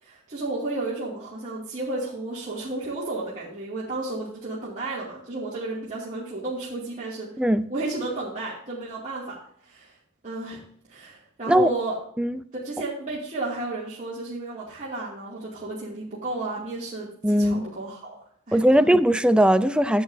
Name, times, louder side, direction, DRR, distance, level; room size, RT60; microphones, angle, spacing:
voice 1, 0.0-7.3 7.7-9.2 9.6-10.0 10.2-10.6 10.9-11.9 12.6-18.2 18.5-19.0, right 2 dB, 35° right, 2.4 m, -32 dB
voice 2, 17.2-17.7 18.5-20.0, equal, 5° right, 0.4 m, -19 dB
13.0 x 8.0 x 2.7 m
head